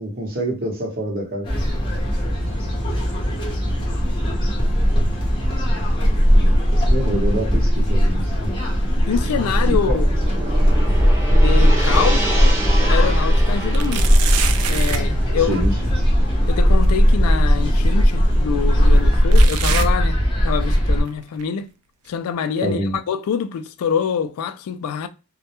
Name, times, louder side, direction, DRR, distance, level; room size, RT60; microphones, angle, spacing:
voice 1, 0.0-1.5 5.8-6.0 6.3-6.6 6.9-8.6 9.6-10.0 15.4-15.8 22.6-23.0, right 1 dB, 40° right, 0.8 m, -26 dB
sound 1, 1.4-21.0, equal, 20° left, 0.7 m, -18 dB
voice 2, 9.1-10.1 11.3-12.6 12.9-14.1 14.7-15.6 16.5-21.7 22.1-25.1, left 7 dB, 80° left, 0.3 m, -25 dB
sound 2, 9.2-9.9 10.3-12.2 12.7-12.8 13.7-15.1 16.8-16.9 17.9-18.0 19.3-20.7 21.1-21.4 22.1-22.2 23.1-23.2, right 7 dB, 80° right, 0.4 m, -29 dB
Gong, 9.4-17.7, right 1 dB, 10° right, 0.4 m, -30 dB
2.2 x 2.1 x 2.8 m
head